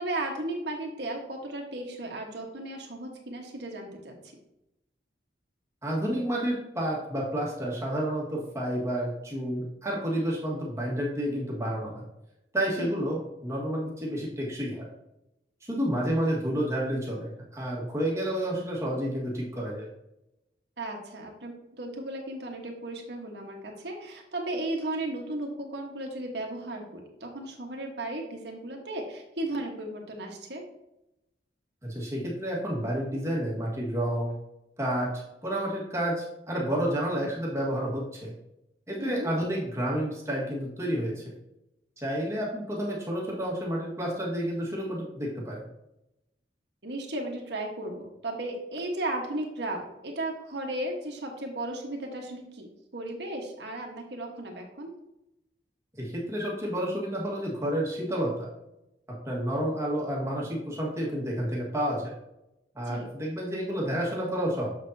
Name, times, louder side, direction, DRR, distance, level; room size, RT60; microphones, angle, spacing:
voice 1, 0.0-4.2 12.8-13.0 20.8-30.6 39.0-39.3 46.8-52.7 52.9-54.9 62.9-63.1, right 1 dB, 70° right, 2 dB, 1.5 m, -35 dB
voice 2, 5.8-12.0 12.5-14.9 15.6-19.9 31.8-34.3 34.8-38.3 38.9-41.3 42.0-45.6 56.0-58.5 59.3-62.1 62.8-64.7, equal, 15° right, -4 dB, 1.7 m, -30 dB
7.3 x 6.5 x 2.8 m, 0.88 s
head